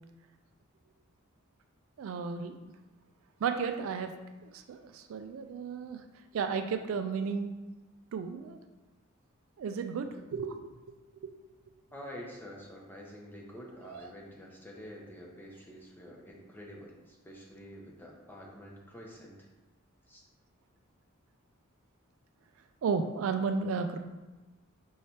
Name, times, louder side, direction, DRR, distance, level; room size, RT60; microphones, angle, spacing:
voice 1, 2.0-2.5 3.4-4.1 4.4-6.0 6.3-7.5 8.1-8.6 9.6-10.7 11.2-11.3 13.8-14.1 22.8-24.0, right 5 dB, 70° right, 8 dB, 0.3 m, -33 dB
voice 2, 11.9-19.5 20.1-20.2, equal, 10° left, -2 dB, 0.7 m, -48 dB
5.5 x 3.2 x 2.8 m, 1.2 s
head